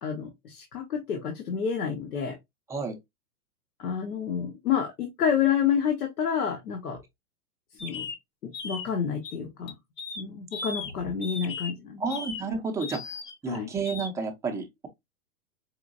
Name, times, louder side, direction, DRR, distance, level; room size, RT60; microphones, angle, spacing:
voice 1, 0.0-2.3 3.8-7.0 7.8-8.1 8.6-9.7 10.2-12.0 13.5-13.7, left 7 dB, 80° left, 1.2 m, -29 dB
sound 1, 7.8-8.2 8.5-8.9 9.2-9.3 9.7-10.2 10.5-10.9 11.2-11.7 12.1-12.4 12.8-13.6 13.8-14.1, left 4 dB, 25° left, 0.7 m, -37 dB
voice 2, 12.0-13.0 13.4-14.9, right 4 dB, 5° right, 0.4 m, -31 dB
4.9 x 2.6 x 2.5 m
hypercardioid pair, 125°, 44 cm